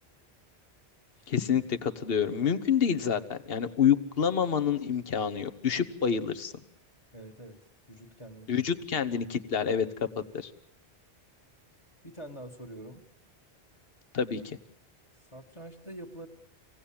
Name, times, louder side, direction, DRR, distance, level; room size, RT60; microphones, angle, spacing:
voice 1, 1.3-6.5 8.5-9.9 10.3-10.5 14.1-14.6, left 7 dB, 60° left, 12 dB, 1.3 m, -27 dB
voice 2, 7.1-8.5 12.0-13.0 15.3-16.3, right 1 dB, 25° left, 7 dB, 1.7 m, -45 dB
26.0 x 17.5 x 8.7 m, 0.81 s
omnidirectional pair, 1.1 m